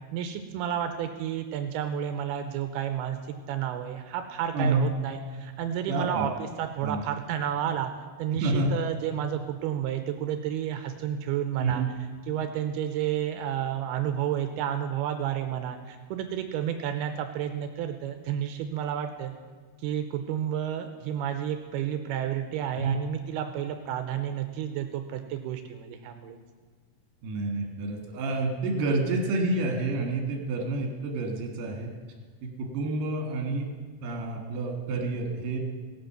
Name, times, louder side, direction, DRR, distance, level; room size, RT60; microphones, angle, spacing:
voice 1, 0.1-3.2 3.5-7.9 8.2-11.8 12.3-19.4 19.8-26.4, right 10 dB, 80° right, 7 dB, 2.4 m, -31 dB
voice 2, 4.5-4.9 5.9-6.3 6.8-7.0 8.3-8.7 11.6-11.9 22.8-23.0 27.2-31.9 32.4-33.7 34.0-35.6, right 2 dB, 60° right, 1 dB, 2.8 m, -29 dB
18.5 x 8.0 x 5.7 m, 1.5 s
omnidirectional pair, 4.9 m